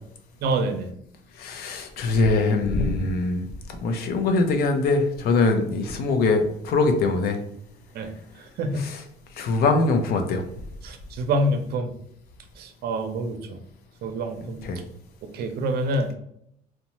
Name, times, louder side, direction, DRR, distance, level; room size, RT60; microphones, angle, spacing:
voice 1, 0.4-0.9 7.9-8.1 8.6-8.9 10.8-11.9 12.6-13.6 14.0-14.6 15.3-16.1, right 1 dB, 70° right, 6 dB, 0.5 m, -26 dB
voice 2, 1.4-3.4 3.8-7.4 8.7-9.0 9.4-10.4 14.6-14.8, left 3 dB, 65° left, 5 dB, 0.5 m, -22 dB
2.7 x 2.1 x 2.9 m, 0.72 s
cardioid pair, 110°, 17 cm